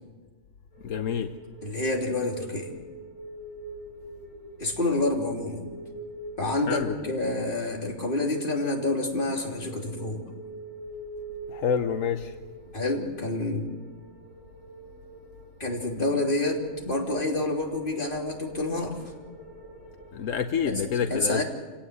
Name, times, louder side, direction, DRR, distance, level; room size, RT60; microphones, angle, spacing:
sound 1, 0.7-20.6, right 2 dB, 25° left, 8.1 m, -45 dB
voice 1, 0.8-1.3 6.7-7.1 11.5-12.3 20.1-21.4, left 7 dB, 85° left, 8 dB, 1.3 m, -28 dB
voice 2, 1.6-2.7 4.6-5.7 6.4-10.2 12.7-13.7 15.6-19.0 20.6-20.8 21.1-21.4, left 2 dB, 45° left, 0 dB, 3.4 m, -28 dB
28.0 x 17.5 x 8.1 m, 1.4 s
omnidirectional pair, 1.3 m